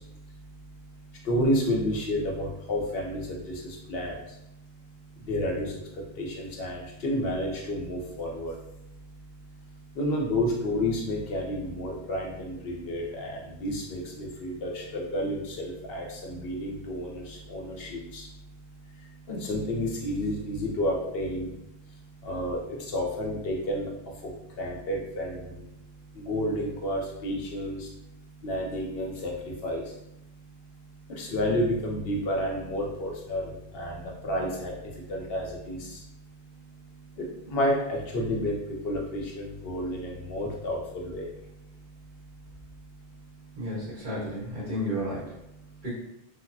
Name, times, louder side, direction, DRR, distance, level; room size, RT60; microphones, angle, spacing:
voice 1, 1.3-3.4 3.9-4.1 5.3-5.7 6.2-8.5 10.0-18.2 19.3-21.5 22.3-22.6 22.9-23.9 24.6-25.5 26.3-27.8 28.4-29.3 29.6-29.8 31.2-33.4 33.7-33.9 34.2-34.7 35.1-35.8 37.5-38.5 38.8-41.3, left 1 dB, 70° left, -2 dB, 0.9 m, -30 dB
voice 2, 43.5-45.3 45.8-45.9, equal, 50° right, -9 dB, 1.7 m, -32 dB
3.4 x 2.0 x 2.6 m, 0.84 s
omnidirectional pair, 1.0 m